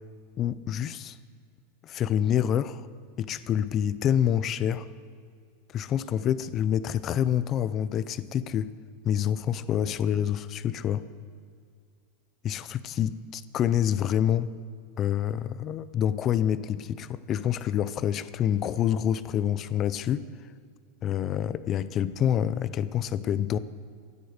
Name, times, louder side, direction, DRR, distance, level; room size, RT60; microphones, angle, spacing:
voice 1, 0.4-1.2 1.8-2.8 3.2-4.9 5.7-8.7 9.0-11.1 12.4-14.5 15.0-20.2 21.0-23.6, left 10 dB, 25° left, 16 dB, 0.5 m, -27 dB
15.5 x 11.0 x 6.5 m, 2.2 s
supercardioid pair, 160°, 0 cm